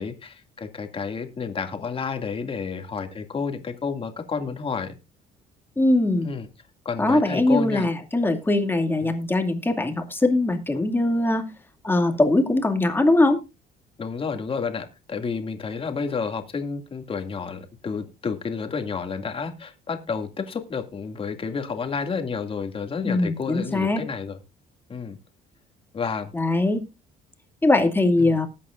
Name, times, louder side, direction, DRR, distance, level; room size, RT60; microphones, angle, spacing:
voice 1, 0.0-5.0 6.2-6.5 6.9-7.9 14.0-24.4 24.9-25.2 25.9-26.3 28.2-28.3, left 5 dB, 35° left, 6 dB, 2.3 m, -30 dB
voice 2, 5.8-6.3 7.0-11.4 11.8-13.4 23.0-24.0 26.3-26.8 27.6-28.5, left 2 dB, 10° left, 5 dB, 2.3 m, -21 dB
20.0 x 8.5 x 2.5 m, 0.26 s
cardioid pair, 110°, 17 cm